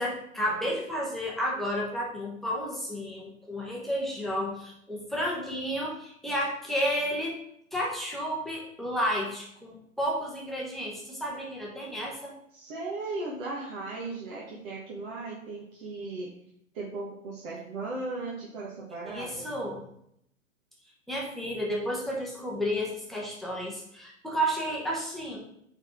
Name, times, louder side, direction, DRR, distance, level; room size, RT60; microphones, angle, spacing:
voice 1, 0.0-7.3 7.7-12.3 19.1-19.8 21.1-25.4, equal, ahead, -4 dB, 1.1 m, -31 dB
voice 2, 12.5-16.3 16.7-19.5, right 3 dB, 45° right, -4 dB, 1.5 m, -37 dB
8.8 x 3.9 x 3.7 m, 0.73 s
figure-of-eight pair, 125°, 42 cm